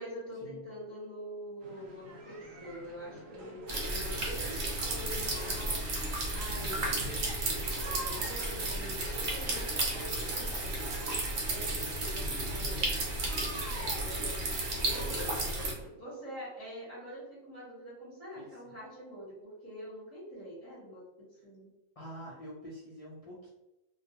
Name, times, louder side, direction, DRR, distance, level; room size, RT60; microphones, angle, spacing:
voice 1, 0.0-10.9 11.4-13.0 13.7-14.4 14.7-21.7, equal, 25° right, -10 dB, 0.9 m, -45 dB
sound 1, 1.6-15.9, equal, 90° right, 1.0 m, -47 dB
sound 2, 3.7-15.7, right 2 dB, 65° right, 0.9 m, -33 dB
voice 2, 18.4-18.8 22.0-23.5, equal, 65° left, -7 dB, 0.3 m, -47 dB
2.2 x 2.2 x 2.7 m, 0.97 s
omnidirectional pair, 1.3 m